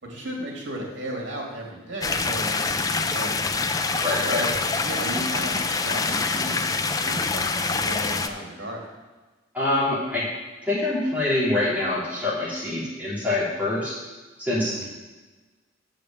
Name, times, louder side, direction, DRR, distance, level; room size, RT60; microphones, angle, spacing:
voice 1, 0.0-3.3 4.1-4.5 4.8-8.8 14.7-14.8, right 1 dB, 70° right, -1 dB, 2.7 m, -35 dB
sound 1, 2.0-8.3, left 4 dB, 20° left, 0.3 m, -25 dB
voice 2, 4.0-4.7 9.5-10.3 10.6-14.0 14.4-14.8, left 2 dB, 10° right, -8 dB, 2.7 m, -25 dB
8.0 x 5.1 x 7.4 m, 1.2 s
head